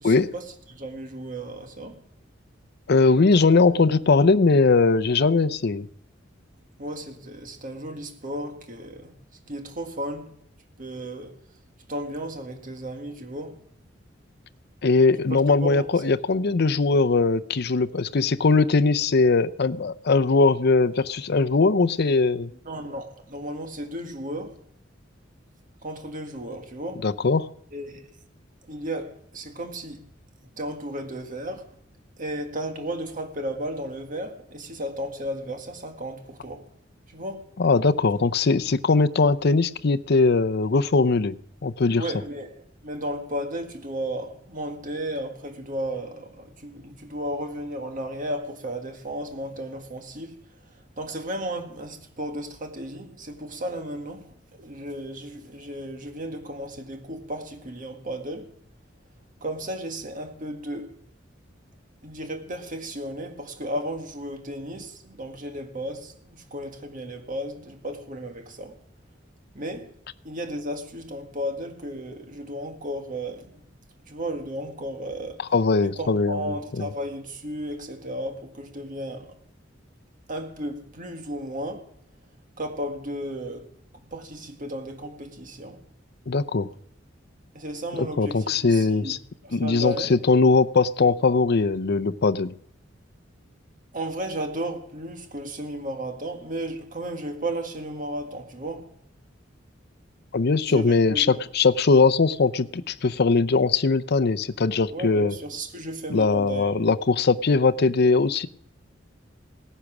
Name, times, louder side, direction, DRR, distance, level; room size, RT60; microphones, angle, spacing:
voice 1, 0.0-2.0 6.8-9.2 9.5-10.3 10.8-11.4 11.9-13.6 15.3-15.9 22.7-24.6 25.8-27.1 27.7-28.1 28.7-30.0 30.6-31.7 32.2-36.7 37.1-37.5 42.0-42.5 42.8-50.3 51.0-58.5 59.4-61.0 62.0-68.8 69.5-69.9 70.2-73.7 74.0-75.5 75.8-79.4 80.3-81.9 82.6-83.7 84.0-85.8 87.5-89.2 89.4-90.1 93.9-98.9 100.7-101.4 104.9-106.7, right 1 dB, 45° right, 1.7 m, -34 dB
voice 2, 2.9-5.9 14.8-22.5 27.0-27.5 37.6-41.4 41.6-42.0 75.5-76.9 86.3-86.7 88.0-89.2 89.5-92.5 100.3-105.4 106.1-108.5, left 4 dB, 55° left, 0.6 m, -20 dB
18.0 x 10.0 x 6.1 m
head